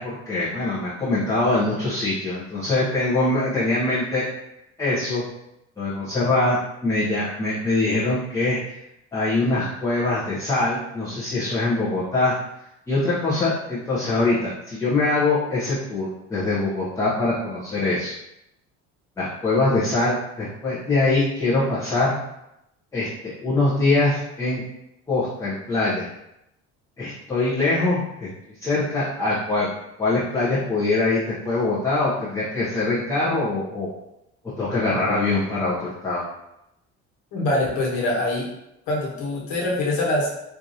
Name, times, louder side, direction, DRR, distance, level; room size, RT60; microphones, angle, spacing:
voice 1, 0.0-4.3 4.8-5.2 5.8-8.8 9.1-12.4 12.9-18.1 19.2-22.1 22.9-23.1 23.4-24.6 25.1-26.1 27.0-28.3 28.6-29.7 30.0-33.9 34.6-36.2, left 2 dB, 10° left, -9 dB, 0.6 m, -23 dB
voice 2, 37.3-38.5 38.9-40.3, left 1 dB, 80° left, -4 dB, 1.2 m, -24 dB
4.5 x 2.5 x 2.6 m, 0.85 s
cardioid pair, 175°, 29 cm